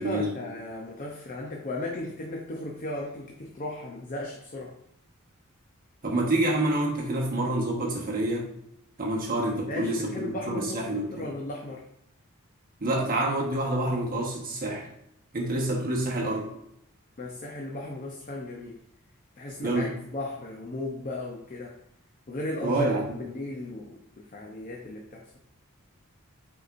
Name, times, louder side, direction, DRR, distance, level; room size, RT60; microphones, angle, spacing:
voice 1, 0.0-4.8 9.7-11.8 17.2-18.8 19.4-21.8 22.3-25.2, left 2 dB, 40° left, 0 dB, 0.7 m, -36 dB
voice 2, 6.0-8.5 9.0-11.3 12.8-14.8 15.3-16.5 19.6-19.9 22.6-23.2, right 1 dB, 45° right, -1 dB, 1.2 m, -27 dB
7.7 x 4.8 x 2.6 m, 0.76 s
head